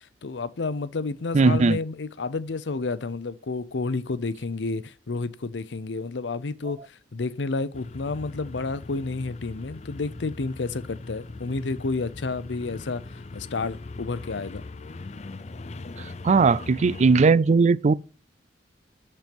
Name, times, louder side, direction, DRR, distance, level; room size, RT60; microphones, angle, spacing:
voice 1, 0.2-14.6, left 3 dB, 85° left, 0.6 m, -30 dB
voice 2, 1.3-1.8 16.0-17.9, right 4 dB, 40° right, 0.4 m, -19 dB
sound 1, 7.7-17.3, left 3 dB, 40° left, 0.5 m, -40 dB
12.0 x 4.4 x 5.2 m
head